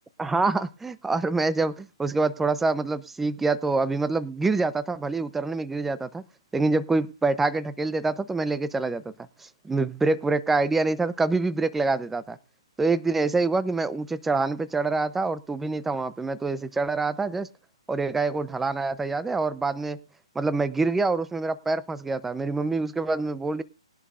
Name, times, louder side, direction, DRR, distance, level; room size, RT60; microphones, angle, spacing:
voice 1, 0.2-6.2 6.5-9.1 9.4-12.4 12.8-17.5 17.9-20.0 20.3-23.6, right 3 dB, 5° right, 14 dB, 0.6 m, -26 dB
20.0 x 11.0 x 2.5 m, 0.30 s
hypercardioid pair, 155°, 3 cm